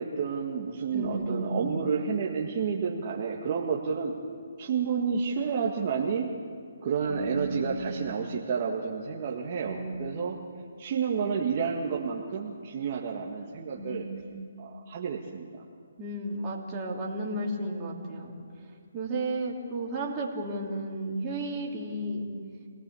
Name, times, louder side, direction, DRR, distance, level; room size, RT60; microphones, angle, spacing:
voice 1, 0.0-4.1 4.6-6.3 6.8-10.4 10.8-14.1 14.6-15.5, right 6 dB, 40° right, -2 dB, 1.9 m, -30 dB
voice 2, 0.9-1.7 7.1-8.0 9.6-10.1 13.8-14.4 16.0-18.4 18.9-22.3, right 1 dB, 25° right, -2 dB, 3.2 m, -33 dB
27.5 x 18.5 x 7.1 m, 2.2 s
hypercardioid pair, 155°, 0 cm